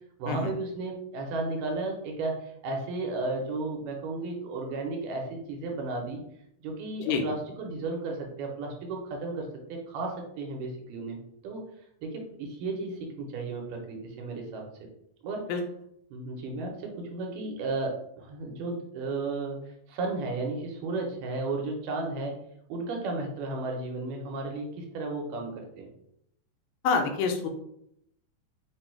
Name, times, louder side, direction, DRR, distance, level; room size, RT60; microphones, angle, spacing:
voice 1, 0.2-6.2 6.6-11.2 11.4-11.6 12.0-14.9 15.2-15.5 16.1-19.6 19.9-22.4 22.7-25.9, right 3 dB, 80° right, 0 dB, 2.3 m, -34 dB
voice 2, 26.8-27.5, left 5 dB, 80° left, 4 dB, 2.2 m, -26 dB
5.2 x 2.2 x 4.3 m, 0.75 s
omnidirectional pair, 4.0 m